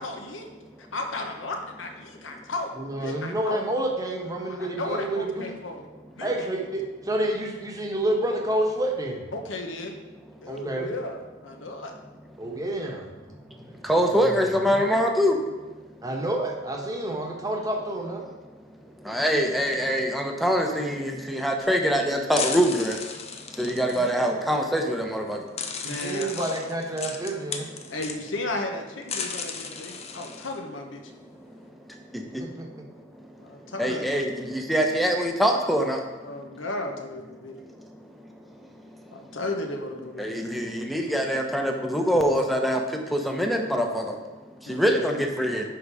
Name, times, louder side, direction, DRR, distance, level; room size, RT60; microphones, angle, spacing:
voice 1, 0.0-2.7 3.0-3.6 4.5-5.8 6.1-6.5 9.3-9.9 10.4-11.9 23.6-24.1 25.8-26.4 27.9-31.1 33.4-34.2 36.2-37.5 39.1-40.3 44.7-45.3, left 2 dB, 75° left, 3 dB, 1.1 m, -34 dB
voice 2, 2.7-5.6 6.2-9.3 10.5-10.9 12.4-13.8 14.2-14.9 16.0-18.2 25.8-27.8 32.4-32.7, right 1 dB, 20° right, 0 dB, 1.1 m, -29 dB
voice 3, 13.9-15.3 19.1-23.0 23.6-25.4 33.8-36.0 40.2-42.8 43.1-44.0 44.7-45.6, equal, ahead, 3 dB, 0.8 m, -24 dB
sound 1, 21.6-21.7 22.3-24.1 25.0-25.1 25.6-28.3 29.0-30.6, left 5 dB, 35° left, 0.6 m, -35 dB
10.5 x 4.0 x 4.8 m, 1.2 s
head